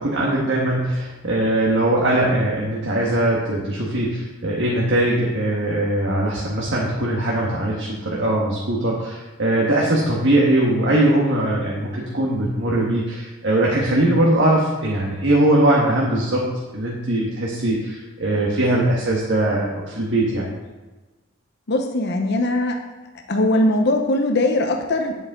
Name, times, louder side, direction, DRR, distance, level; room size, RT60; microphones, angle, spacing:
voice 1, 0.0-16.5 16.7-20.5, right 1 dB, 60° right, -3 dB, 1.5 m, -20 dB
voice 2, 21.7-22.8 23.3-25.2, left 1 dB, 55° left, 3 dB, 0.8 m, -20 dB
9.8 x 8.3 x 3.7 m, 1.2 s
head